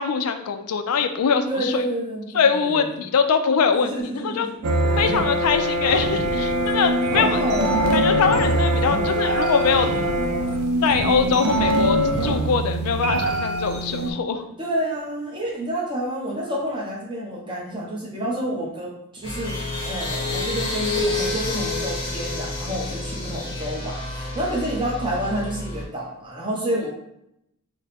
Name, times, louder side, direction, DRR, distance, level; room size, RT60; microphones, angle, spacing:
voice 1, 0.0-1.8 2.3-3.9 4.2-4.5 5.0-7.4 7.9-9.9 10.8-14.5, left 6 dB, 85° left, 8 dB, 0.4 m, -22 dB
voice 2, 1.5-3.0 3.9-5.2 7.1-8.0 11.2-11.4 14.6-26.9, right 1 dB, 20° right, -3 dB, 0.8 m, -29 dB
sound 1, 4.6-14.1, right 1 dB, 85° right, 0.6 m, -22 dB
sound 2, 19.2-25.8, left 2 dB, 25° left, 0.8 m, -29 dB
3.5 x 2.1 x 4.1 m, 0.80 s
head